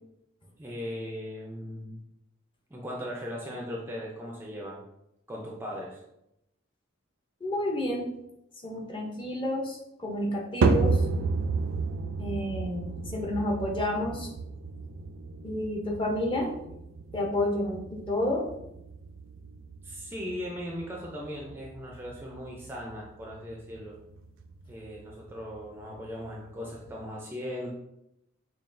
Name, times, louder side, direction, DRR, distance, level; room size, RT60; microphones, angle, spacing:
voice 1, 0.6-2.0 2.7-4.8 5.3-6.0 19.8-24.0 24.7-27.7, equal, 10° right, -2 dB, 0.4 m, -38 dB
voice 2, 7.4-8.1 8.6-11.0 12.2-14.3 15.4-16.5 17.1-18.5, left 1 dB, 25° left, 0 dB, 0.7 m, -30 dB
sound 1, 10.6-27.0, right 3 dB, 70° right, 0.4 m, -33 dB
5.6 x 2.3 x 2.5 m, 0.84 s
head